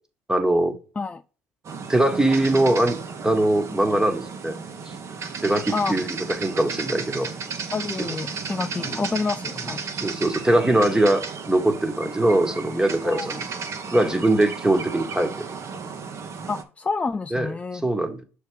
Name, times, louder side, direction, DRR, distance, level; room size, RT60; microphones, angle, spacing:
voice 1, 0.3-0.8 1.9-4.5 5.4-7.3 8.0-8.2 8.9-9.0 10.0-13.4 13.9-15.3 17.3-17.5 17.8-18.2, right 1 dB, 10° right, 1.4 m, -22 dB
sound 1, 1.6-16.6, right 5 dB, 45° right, 1.0 m, -34 dB
voice 2, 7.7-9.8 13.0-13.3 16.5-17.8, left 4 dB, 20° left, 0.3 m, -28 dB
6.5 x 3.4 x 4.7 m
hypercardioid pair, 65°, 7 cm